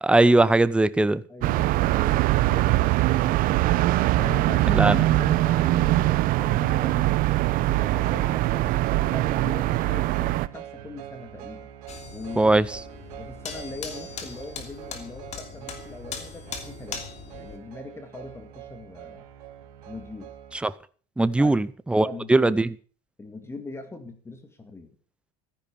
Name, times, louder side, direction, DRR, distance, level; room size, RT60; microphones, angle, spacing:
voice 1, 0.0-1.2 4.7-5.3 12.4-12.7 20.6-20.7 21.2-22.7, right 2 dB, 5° right, 0.7 m, -20 dB
voice 2, 1.3-3.7 4.1-11.7 12.1-12.5 13.2-17.1 17.3-19.3 19.9-20.3 21.4-21.6 22.0-22.5 23.2-24.9, left 2 dB, 15° left, 2.1 m, -41 dB
sound 1, 1.4-10.5, right 17 dB, 50° right, 0.8 m, -22 dB
sound 2, 7.7-20.6, right 11 dB, 80° right, 2.5 m, -43 dB
sound 3, 11.9-17.6, left 6 dB, 35° left, 3.1 m, -40 dB
14.0 x 10.5 x 7.0 m
supercardioid pair, 130°, 19 cm